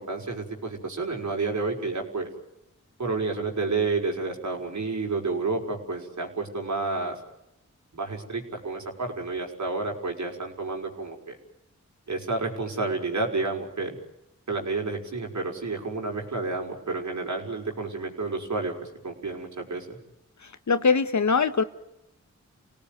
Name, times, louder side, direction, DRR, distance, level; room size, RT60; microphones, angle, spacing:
voice 1, 0.0-2.3 3.0-7.2 7.9-11.4 12.1-14.0 14.5-18.7 19.0-20.0, right 3 dB, 75° right, 1 dB, 5.7 m, -30 dB
voice 2, 20.4-21.6, left 5 dB, 70° left, 10 dB, 1.6 m, -23 dB
29.0 x 18.0 x 9.4 m, 0.89 s
cardioid pair, 55°, 29 cm